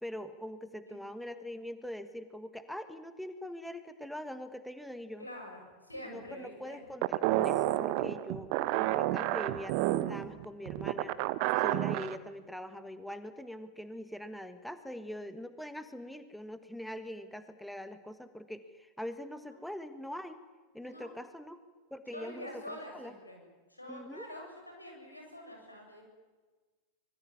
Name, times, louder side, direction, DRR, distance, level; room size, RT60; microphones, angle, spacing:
voice 1, 0.0-5.3 6.1-11.2 11.6-20.4 20.7-21.6 21.9-23.1 23.9-24.3, left 1 dB, ahead, 10 dB, 1.5 m, -43 dB
voice 2, 5.2-6.8 20.8-21.1 22.1-23.4 23.7-26.0, left 1 dB, 85° left, 2 dB, 7.8 m, -46 dB
sound 1, 7.0-12.2, right 15 dB, 45° right, 1.1 m, -30 dB
25.0 x 22.0 x 9.6 m, 1.3 s
figure-of-eight pair, 90°, 0 cm